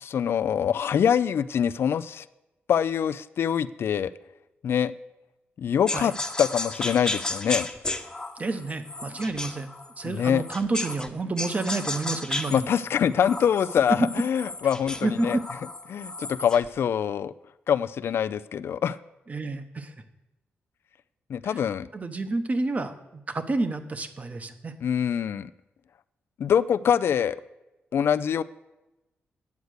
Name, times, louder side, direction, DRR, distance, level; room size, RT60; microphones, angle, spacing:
voice 1, 0.0-2.2 2.7-4.1 4.6-4.9 5.6-6.1 6.4-7.7 10.0-10.4 12.5-15.4 15.9-17.3 17.7-19.0 21.3-21.9 24.8-25.5 26.4-27.4 27.9-28.4, left 8 dB, 65° left, 14 dB, 0.3 m, -24 dB
sound 1, 5.9-11.1 11.4-16.7, left 2 dB, 20° left, 0.9 m, -34 dB
voice 2, 8.4-9.7 10.0-12.7 13.9-14.0 15.0-15.4 19.3-19.9 21.4-21.6 21.9-24.7, right 3 dB, 35° right, 9 dB, 1.0 m, -29 dB
9.4 x 8.1 x 6.4 m, 1.0 s
cardioid pair, 90°, 4 cm